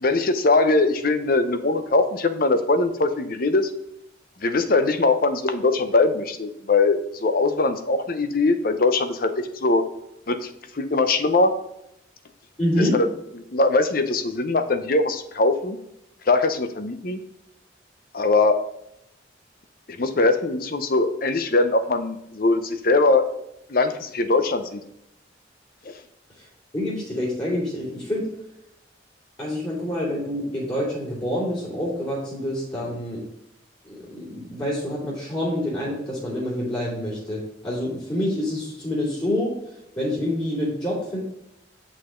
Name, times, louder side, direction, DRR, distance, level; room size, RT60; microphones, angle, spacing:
voice 1, 0.0-3.7 4.4-9.8 10.3-10.5 10.7-11.5 12.8-13.1 13.5-15.8 16.3-17.2 18.1-18.6 20.0-23.3 23.7-24.8, left 3 dB, 50° left, 9 dB, 0.7 m, -21 dB
voice 2, 12.6-12.9 26.7-28.2 29.4-33.2 33.8-39.5 40.0-41.2, left 1 dB, 25° left, -9 dB, 3.0 m, -27 dB
7.8 x 6.1 x 3.7 m, 0.82 s
head